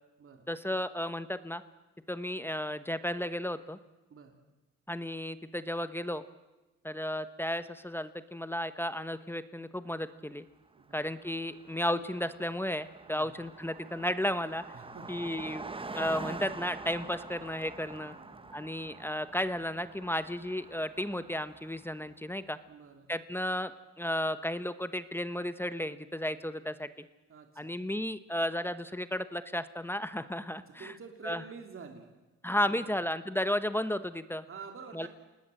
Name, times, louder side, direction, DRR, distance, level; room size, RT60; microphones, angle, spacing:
voice 1, 0.5-1.6 2.1-3.8 4.9-6.2 6.8-10.4 10.9-14.6 15.1-15.6 15.9-18.2 18.5-22.6 23.1-23.7 24.0-27.1 27.6-30.9 31.2-31.4 32.4-34.4 34.9-35.1, left 1 dB, 5° left, 12 dB, 1.1 m, -33 dB
voice 2, 10.7-11.0 13.1-13.4 14.7-15.2 17.9-18.7 22.7-23.1 27.3-27.7 30.8-32.1 32.5-33.0 34.5-35.1, right 5 dB, 45° right, 4 dB, 3.1 m, -49 dB
Car passing by, 10.8-10.9 11.1-22.1, right 3 dB, 15° right, 1.1 m, -46 dB
27.5 x 19.5 x 7.8 m, 1.1 s
cardioid pair, 90°, 30 cm